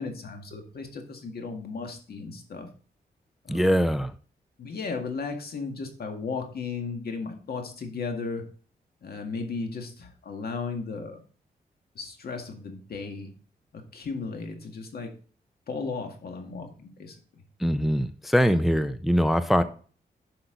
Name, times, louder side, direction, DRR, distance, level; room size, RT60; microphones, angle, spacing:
voice 1, 0.0-2.7 3.4-3.8 4.6-8.4 9.0-11.2 12.0-13.3 13.7-15.1 15.7-17.2, left 4 dB, 65° left, 4 dB, 2.0 m, -35 dB
voice 2, 3.5-4.1 17.6-19.6, equal, ahead, 11 dB, 0.5 m, -22 dB
10.5 x 5.7 x 3.9 m, 0.42 s
wide cardioid pair, 110°, 17 cm